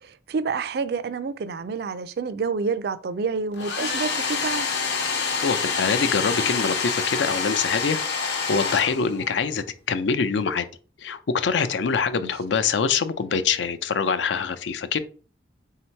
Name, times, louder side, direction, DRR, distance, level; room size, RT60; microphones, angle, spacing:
voice 1, 0.0-4.7 12.1-12.3, right 4 dB, 60° right, 0.4 m, -28 dB
Domestic sounds home sounds, 3.5-9.4, left 5 dB, 70° left, 0.8 m, -27 dB
voice 2, 5.4-10.6 11.0-15.0, left 5 dB, 90° left, 0.5 m, -24 dB
3.7 x 2.8 x 4.4 m
head